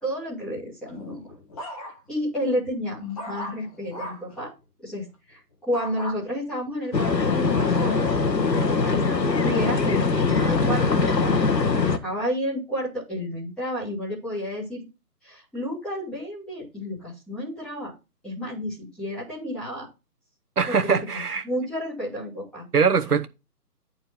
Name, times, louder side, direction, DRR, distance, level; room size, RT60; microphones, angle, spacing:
voice 1, 0.0-1.3 2.1-4.5 4.8-9.0 9.3-14.8 15.2-17.9 18.2-19.9 20.7-22.6, equal, ahead, 1.5 m, -31 dB
sound 1, 0.9-2.2 2.7-4.4 5.7-6.2 6.8-8.8 9.4-9.8, equal, 20° left, 1.4 m, -39 dB
sound 2, 6.9-12.0, left 4 dB, 80° left, 1.5 m, -22 dB
voice 2, 20.6-21.4 22.7-23.3, right 6 dB, 65° right, 1.2 m, -22 dB
10.0 x 4.5 x 4.3 m
figure-of-eight pair, 150°, 49 cm